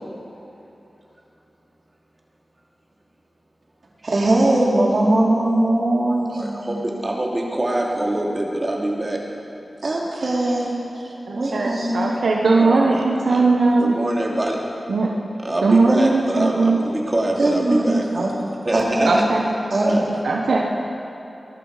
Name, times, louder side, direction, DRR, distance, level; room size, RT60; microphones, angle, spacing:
voice 1, 4.0-7.0 9.8-11.1 11.3-12.0 17.4-18.3 18.7-19.2 19.7-20.1, right 1 dB, 65° right, -3 dB, 3.2 m, -20 dB
voice 2, 6.3-9.2 12.5-13.4 13.8-14.6 15.4-18.0 18.6-19.2 19.8-20.0, right 1 dB, 35° right, -2 dB, 2.9 m, -24 dB
voice 3, 11.3-14.0 14.9-15.1 15.6-16.8 19.0-19.5 20.2-20.6, right 3 dB, 90° right, -1 dB, 1.2 m, -19 dB
21.0 x 11.5 x 5.0 m, 3.0 s
wide cardioid pair, 60°, 0 cm